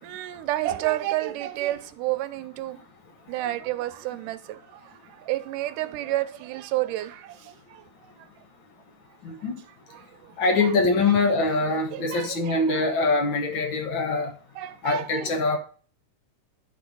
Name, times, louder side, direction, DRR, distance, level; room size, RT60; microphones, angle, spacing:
voice 1, 0.0-2.8 3.3-7.8 10.2-10.3 10.6-10.7 11.9-12.9 14.6-15.6, right 15 dB, 85° right, 2.2 m, -30 dB
voice 2, 9.2-9.5 10.4-14.3 14.8-15.6, left 3 dB, 50° left, 1.5 m, -23 dB
10.5 x 4.4 x 5.3 m
omnidirectional pair, 3.7 m